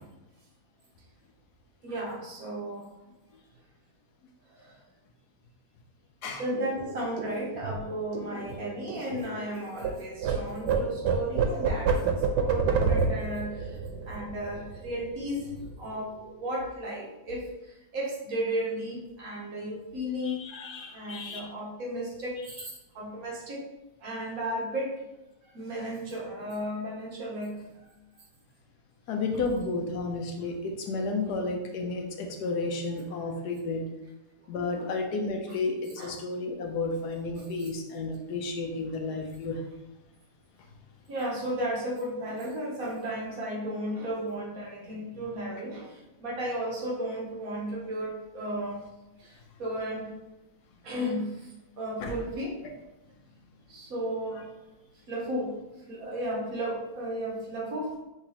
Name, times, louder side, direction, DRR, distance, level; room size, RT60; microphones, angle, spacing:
voice 1, 1.8-2.9 4.6-4.8 6.4-13.8 14.1-16.1 16.4-17.4 17.9-20.4 20.9-23.6 24.0-24.9 25.5-27.7 34.8-34.9 36.0-36.1 37.4-37.5 41.1-48.8 49.2-50.1 50.8-51.5 51.8-52.5 53.7-54.4 55.1-55.6 55.9-57.9, right 1 dB, 60° right, -3 dB, 1.4 m, -34 dB
sound 1, 6.5-9.9 10.2-15.2 15.5-15.7 16.0-16.5, right 5 dB, 90° right, 1.2 m, -29 dB
voice 2, 20.2-21.4 29.1-33.8 34.5-39.6 52.0-52.1, left 3 dB, 75° left, 3 dB, 1.2 m, -32 dB
5.8 x 2.8 x 2.9 m, 0.97 s
omnidirectional pair, 1.8 m